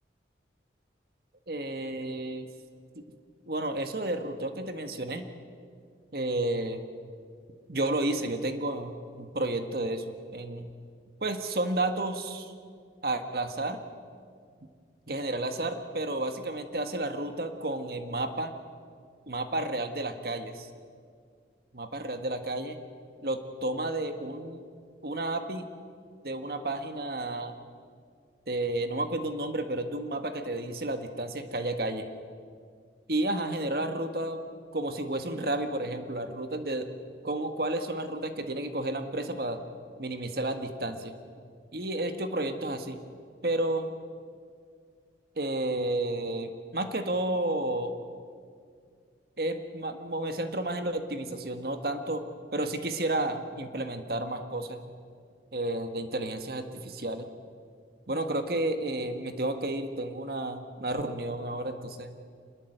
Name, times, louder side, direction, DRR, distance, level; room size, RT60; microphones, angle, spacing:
voice 1, 1.5-2.5 3.5-5.2 6.1-6.8 7.7-10.7 11.2-12.5 13.0-13.8 15.1-18.5 19.3-20.7 21.7-22.8 23.2-24.6 25.0-25.7 26.2-27.6 28.5-32.1 33.1-34.4 34.7-36.9 37.2-39.6 40.0-41.1 41.7-43.0 43.4-43.9 45.4-47.9 49.4-52.2 52.5-54.8 55.5-57.3 58.1-62.2, right 1 dB, 55° right, 7 dB, 1.6 m, -31 dB
26.5 x 21.0 x 8.0 m, 2.1 s
head